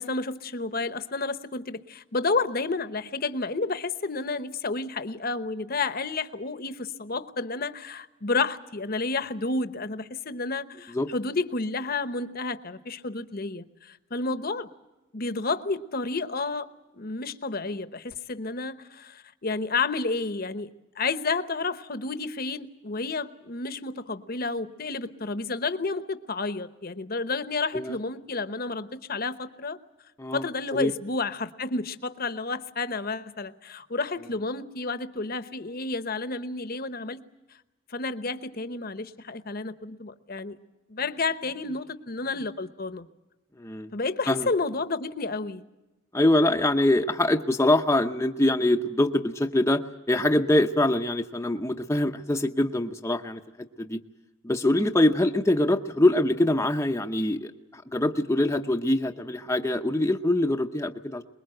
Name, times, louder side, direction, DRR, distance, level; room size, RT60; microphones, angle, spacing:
voice 1, 0.0-14.7 15.1-16.7 16.9-20.7 21.0-29.8 30.3-37.2 37.9-40.6 40.9-43.1 43.9-45.6, left 3 dB, 45° left, 12 dB, 1.0 m, -31 dB
voice 2, 43.6-43.9 44.3-44.5 46.1-53.4 53.8-54.0 54.4-61.2, left 1 dB, 15° left, 4 dB, 0.7 m, -24 dB
23.5 x 21.0 x 7.8 m, 1.0 s
head